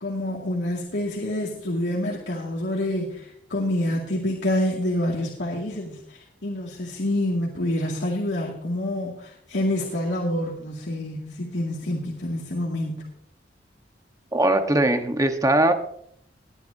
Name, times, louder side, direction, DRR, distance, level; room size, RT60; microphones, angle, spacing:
voice 1, 0.0-13.1, left 1 dB, 80° left, -3 dB, 2.2 m, -27 dB
voice 2, 14.3-15.7, right 1 dB, 20° right, 6 dB, 1.2 m, -20 dB
19.5 x 11.0 x 2.7 m, 0.67 s
head